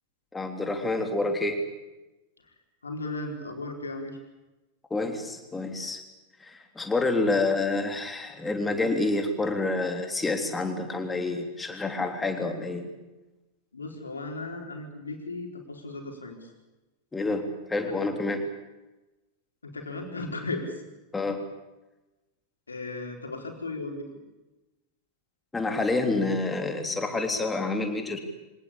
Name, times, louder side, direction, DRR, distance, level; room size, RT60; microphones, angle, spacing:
voice 1, 0.3-1.6 4.9-6.0 6.4-12.9 17.1-18.4 21.1-21.4 25.5-28.2, left 3 dB, 10° left, 5 dB, 3.3 m, -28 dB
voice 2, 2.8-4.2 13.7-16.5 17.8-18.1 19.6-20.7 22.7-24.1, left 2 dB, 75° left, 3 dB, 4.4 m, -36 dB
25.0 x 18.5 x 8.7 m, 1.1 s
figure-of-eight pair, 90°, 0 cm